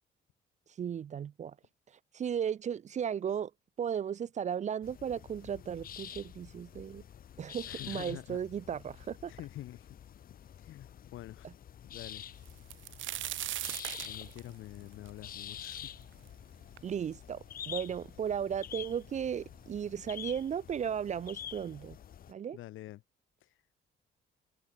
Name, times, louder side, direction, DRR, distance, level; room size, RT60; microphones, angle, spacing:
voice 1, 0.8-1.6 2.1-3.5 3.8-7.0 7.4-9.3 16.8-22.0 22.3-22.6, right 8 dB, 35° right, 0.4 m, -35 dB
sound 1, 4.8-22.3, left 9 dB, 45° left, 0.6 m, -48 dB
voice 2, 7.6-8.4 9.3-9.9 10.6-11.5 11.8-12.2 13.1-13.3 14.0-16.0 22.5-23.0 23.4-23.5, left 15 dB, 85° left, 3.9 m, -47 dB
sound 2, 12.4-16.3 16.8-16.9 17.6-17.7 18.0-18.7 19.5-19.6 20.0-20.2, right 14 dB, 75° right, 0.9 m, -39 dB
cardioid pair, 90°, 20 cm